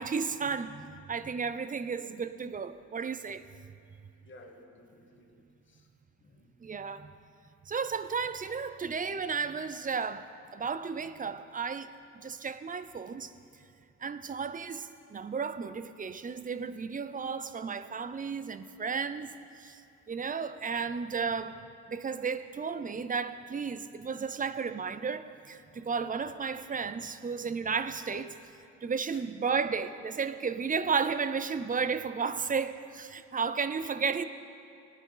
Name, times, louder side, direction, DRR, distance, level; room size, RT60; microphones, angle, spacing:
voice 1, 0.0-3.5 6.6-7.1 7.7-13.3 14.0-19.8 20.1-21.6 21.9-28.4 28.8-34.2, right 5 dB, 25° right, 0.5 m, -33 dB
voice 2, 4.2-5.9 6.2-6.6 29.1-29.3, left 1 dB, 40° left, 1.5 m, -55 dB
18.0 x 11.0 x 3.9 m
cardioid pair, 90°, 30 cm